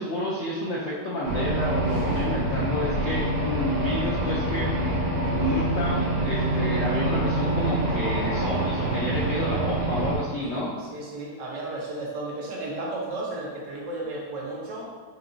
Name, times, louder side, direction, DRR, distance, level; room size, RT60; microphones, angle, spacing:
voice 1, 0.0-4.7 5.4-10.7, left 1 dB, 70° left, -5 dB, 0.6 m, -30 dB
sound 1, 1.2-10.2, right 1 dB, 45° right, 0.7 m, -26 dB
voice 2, 1.8-2.2 10.4-14.9, right 2 dB, 85° right, -4 dB, 1.6 m, -34 dB
6.0 x 2.9 x 2.6 m, 1.5 s
omnidirectional pair, 1.8 m